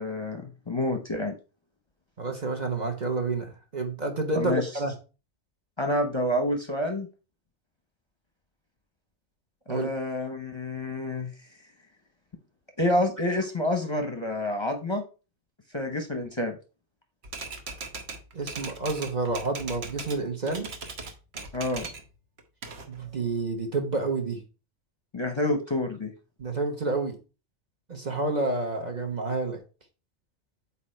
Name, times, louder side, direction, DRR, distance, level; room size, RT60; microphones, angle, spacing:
voice 1, 0.0-1.3 4.3-4.7 5.8-7.1 9.7-11.3 12.8-15.0 15.7-16.6 21.5-21.9 25.1-26.1, left 1 dB, 30° left, 4 dB, 0.8 m, -28 dB
voice 2, 2.2-4.9 9.7-9.9 18.3-20.7 22.9-24.4 26.4-27.1 27.9-29.6, right 3 dB, 40° right, 4 dB, 1.1 m, -29 dB
Typewriter, 17.2-20.2 20.5-22.1 22.4-23.4, right 4 dB, 65° right, 1.2 m, -39 dB
8.2 x 2.9 x 4.3 m, 0.33 s
omnidirectional pair, 1.2 m